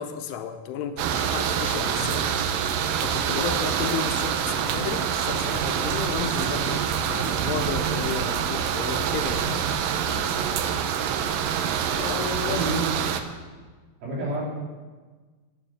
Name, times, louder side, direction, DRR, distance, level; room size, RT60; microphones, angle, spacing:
voice 1, 0.0-2.4 3.0-9.5 11.7-12.8, left 7 dB, 80° left, 7 dB, 2.7 m, -33 dB
sound 1, 1.0-13.2, right 8 dB, 80° right, 2.1 m, -26 dB
voice 2, 10.1-10.6 12.4-12.8 14.0-14.4, right 3 dB, 45° right, -5 dB, 4.1 m, -30 dB
10.0 x 7.0 x 8.8 m, 1.4 s
omnidirectional pair, 4.7 m